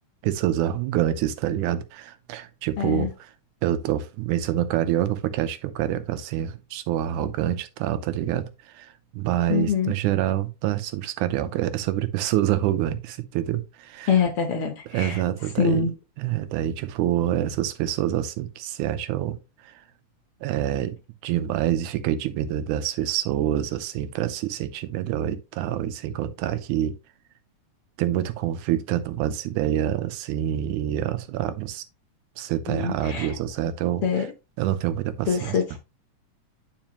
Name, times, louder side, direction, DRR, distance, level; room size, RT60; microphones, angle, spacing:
voice 1, 0.2-3.1 3.6-14.1 14.9-15.8 16.2-19.4 19.6-19.7 20.4-21.0 21.2-26.9 28.0-31.9 32.4-34.0 34.6-35.8, right 12 dB, 85° right, 2.2 m, -26 dB
voice 2, 2.8-3.1 9.5-9.9 14.1-15.2 15.6-15.9 32.7-33.3 34.0-34.3 35.3-35.6, left 6 dB, 60° left, 1.6 m, -24 dB
9.0 x 4.9 x 3.0 m
omnidirectional pair, 3.4 m